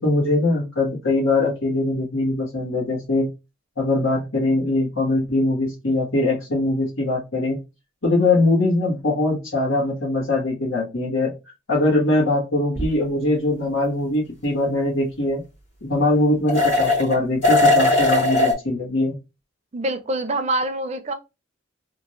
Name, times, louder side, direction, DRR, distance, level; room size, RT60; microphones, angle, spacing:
voice 1, 0.0-3.3 3.8-7.6 8.0-11.3 11.7-15.4 15.8-19.1, left 2 dB, 80° left, 1.5 m, -21 dB
sound 1, 12.7-12.8 16.5-17.2 17.4-18.5, left 2 dB, 65° left, 2.2 m, -18 dB
voice 2, 19.7-21.1, right 2 dB, 35° right, 0.5 m, -25 dB
3.6 x 2.5 x 3.0 m
head